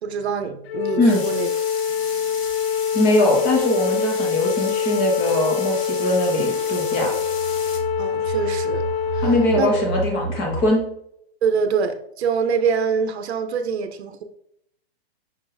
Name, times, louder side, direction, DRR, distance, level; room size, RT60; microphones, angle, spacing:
voice 1, 0.0-1.5 1.9-2.3 8.0-8.8 9.1-9.7 11.4-14.2, right 6 dB, 85° right, 6 dB, 0.7 m, -25 dB
Wind instrument woodwind instrument, 0.7-9.8, left 8 dB, 65° left, 0.5 m, -25 dB
sound 1, 1.1-7.8, left 4 dB, 30° left, 0.9 m, -36 dB
sound 2, 2.4-2.5 2.9-3.0 3.5-3.6 4.5-10.7, right 4 dB, 40° right, 0.8 m, -33 dB
voice 2, 2.9-7.1 9.2-10.8, left 1 dB, 10° left, 0 dB, 0.4 m, -21 dB
5.4 x 2.6 x 3.8 m, 0.73 s
hypercardioid pair, 165°, 32 cm